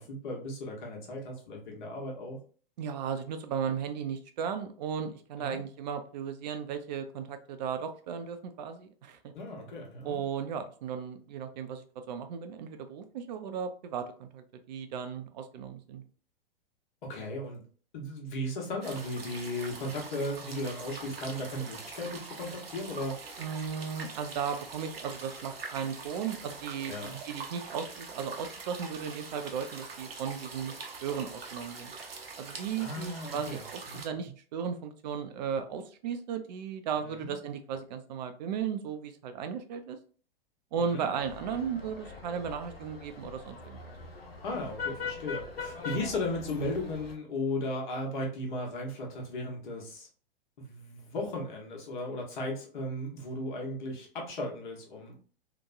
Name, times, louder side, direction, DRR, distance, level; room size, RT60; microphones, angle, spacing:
voice 1, 0.0-2.4 5.4-5.6 9.3-10.2 17.0-17.6 17.9-23.2 26.9-27.2 32.8-34.3 36.9-37.3 40.8-41.1 44.4-50.1 50.6-55.1, left 1 dB, 55° left, -1 dB, 1.1 m, -36 dB
voice 2, 2.8-9.3 10.0-16.0 23.4-31.9 32.4-40.0 40.7-43.8, right 7 dB, 45° right, 7 dB, 0.5 m, -36 dB
sound 1, 18.8-34.1, right 4 dB, 80° right, 0.7 m, -44 dB
sound 2, 41.2-47.1, left 5 dB, 85° left, 0.6 m, -41 dB
2.9 x 2.1 x 2.4 m, 0.42 s
figure-of-eight pair, 100°, 29 cm